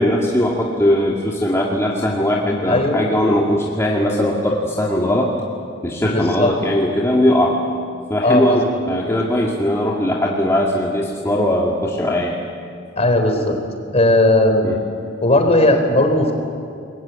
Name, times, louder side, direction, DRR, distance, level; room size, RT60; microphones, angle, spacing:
voice 1, 0.0-5.3 5.8-7.6 8.1-12.4 14.6-14.8, left 1 dB, 15° left, -3 dB, 2.3 m, -19 dB
voice 2, 2.7-3.0 6.0-6.5 8.2-8.6 9.0-9.2 13.0-13.6 13.9-14.7 15.2-16.3, left 1 dB, 35° left, 4 dB, 4.2 m, -16 dB
29.0 x 22.0 x 8.5 m, 2.4 s
head